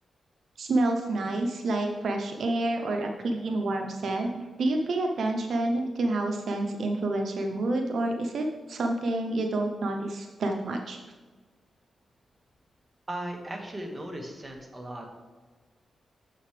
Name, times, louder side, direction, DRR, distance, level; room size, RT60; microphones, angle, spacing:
voice 1, 0.6-11.0, right 2 dB, 75° right, 3 dB, 0.8 m, -28 dB
voice 2, 13.1-15.1, right 1 dB, 25° right, 2 dB, 1.7 m, -37 dB
9.3 x 7.5 x 3.3 m, 1.3 s
cardioid pair, 80°, 0 cm